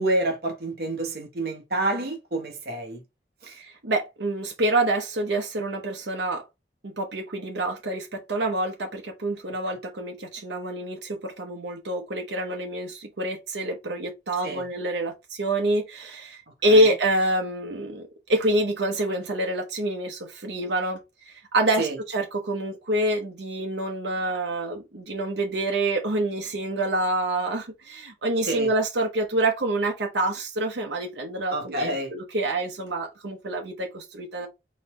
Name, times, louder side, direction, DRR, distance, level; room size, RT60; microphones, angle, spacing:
voice 1, 0.0-3.0 3.4-3.5 14.4-14.7 16.6-16.9 21.8-22.0 28.4-28.7 31.5-32.1, right 2 dB, 60° right, 1.3 m, -28 dB
voice 2, 3.5-6.4 6.8-18.0 18.3-21.0 21.3-34.5, right 1 dB, 80° right, 0.9 m, -27 dB
4.2 x 3.2 x 3.7 m
head